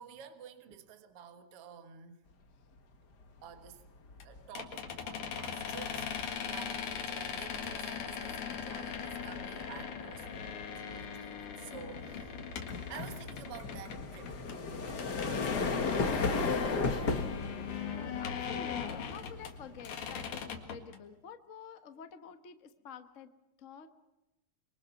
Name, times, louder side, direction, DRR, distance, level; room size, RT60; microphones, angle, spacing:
voice 1, 0.0-2.2 3.4-3.8 4.2-12.4 12.9-16.3, right 8 dB, 55° right, 8 dB, 2.3 m, -51 dB
sound 1, 3.4-3.7 4.0-20.8, left 4 dB, 40° left, 1.8 m, -37 dB
sound 2, 4.2-4.3 4.6-14.6 14.8-19.5 19.8-21.0, left 7 dB, 80° left, 3.4 m, -40 dB
voice 2, 17.9-23.3 23.6-23.9, left 6 dB, 65° left, 8 dB, 0.7 m, -49 dB
26.0 x 23.5 x 5.9 m, 0.97 s
omnidirectional pair, 3.5 m